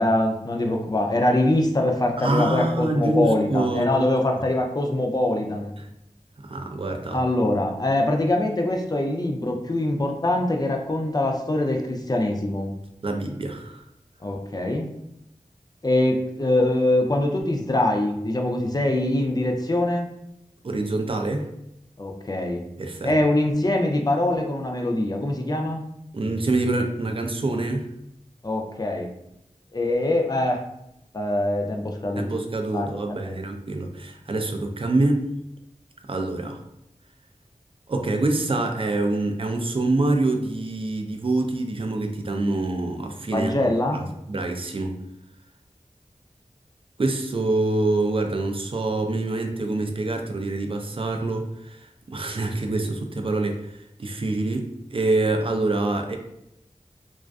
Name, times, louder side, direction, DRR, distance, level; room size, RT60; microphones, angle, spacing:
voice 1, 0.0-5.7 7.1-12.7 14.2-14.9 15.8-20.1 22.0-22.6 23.0-25.8 28.4-29.1 29.7-30.6 31.1-32.3 32.7-32.9 33.3-33.4 43.3-44.0, left 1 dB, 30° left, 2 dB, 0.4 m, -23 dB
voice 2, 2.2-4.1 5.8-5.9 6.4-7.2 13.0-13.8 20.6-21.5 22.8-23.2 26.1-27.9 32.2-35.3 36.1-36.6 37.9-43.5 43.9-45.0 47.0-51.8 52.1-53.6 54.0-56.2, right 2 dB, 45° right, 4 dB, 0.4 m, -25 dB
2.4 x 2.4 x 2.2 m, 0.81 s
wide cardioid pair, 50°, 13 cm